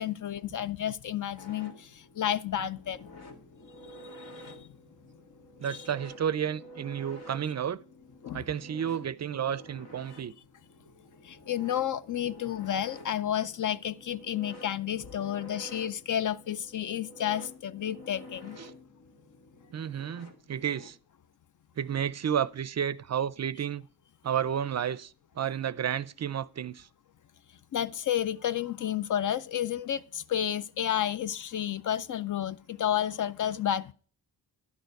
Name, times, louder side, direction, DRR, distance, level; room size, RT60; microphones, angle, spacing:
voice 1, 0.0-3.1 4.3-4.6 5.6-5.9 8.2-8.4 11.2-18.6 27.7-33.9, left 10 dB, 50° left, 0.5 m, -31 dB
sound 1, 1.4-20.9, left 1 dB, 70° left, 1.9 m, -50 dB
voice 2, 5.6-7.8 8.3-10.3 18.6-18.7 19.7-21.0 21.8-23.8 24.2-26.9, right 9 dB, 45° right, 0.4 m, -31 dB
11.0 x 6.7 x 4.6 m
wide cardioid pair, 110°, 39 cm